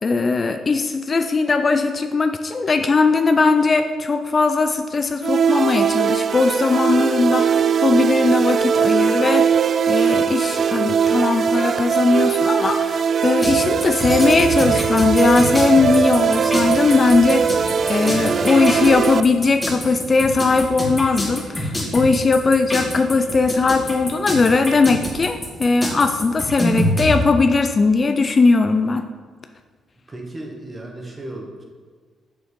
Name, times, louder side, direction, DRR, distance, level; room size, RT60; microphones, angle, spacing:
voice 1, 0.0-9.5 9.9-29.0, left 4 dB, 35° left, 7 dB, 0.4 m, -19 dB
sound 1, 5.2-19.2, right 7 dB, 50° right, 0.3 m, -20 dB
sound 2, 13.4-27.1, equal, 15° left, 2.1 m, -26 dB
voice 2, 30.1-31.6, right 1 dB, 25° right, 1 dB, 1.6 m, -35 dB
7.1 x 6.4 x 5.2 m, 1.5 s
cardioid pair, 90°, 0 cm